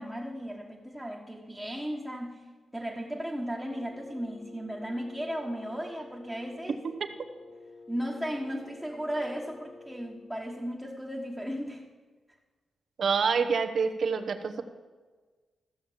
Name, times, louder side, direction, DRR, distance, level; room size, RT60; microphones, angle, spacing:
voice 1, 0.0-2.4 2.7-6.8 7.9-11.8, equal, 5° right, -3 dB, 1.4 m, -35 dB
Wind instrument woodwind instrument, 3.7-10.4, left 3 dB, 20° left, 1.8 m, -50 dB
voice 2, 13.0-14.6, right 5 dB, 65° right, 8 dB, 1.0 m, -27 dB
14.0 x 7.0 x 7.2 m, 1.4 s
cardioid pair, 80°, 0 cm